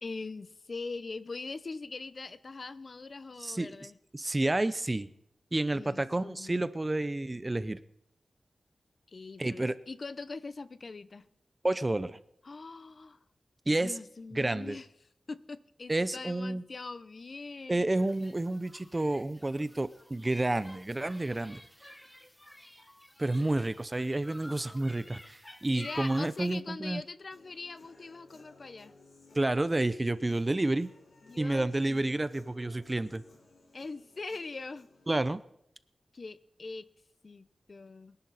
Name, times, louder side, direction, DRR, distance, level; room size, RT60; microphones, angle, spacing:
voice 1, 0.0-4.0 5.7-6.7 9.1-11.3 12.4-13.2 13.7-14.9 15.3-17.9 25.7-28.9 31.2-32.3 33.7-34.9 36.1-36.9 37.2-38.2, left 3 dB, 50° left, 14 dB, 0.8 m, -42 dB
voice 2, 4.1-5.1 5.5-7.8 9.4-9.8 11.6-12.2 13.7-13.9 14.3-14.8 15.9-16.6 17.7-21.6 23.2-27.0 29.3-30.9 31.4-33.2 35.1-35.4, right 2 dB, 25° right, 14 dB, 0.6 m, -30 dB
sound 1, 17.9-26.6, left 1 dB, 10° left, 1.4 m, -51 dB
Human voice / Guitar, 27.3-35.3, left 2 dB, 90° left, 4.6 m, -59 dB
23.0 x 11.0 x 4.1 m, 0.76 s
wide cardioid pair, 100°, 0 cm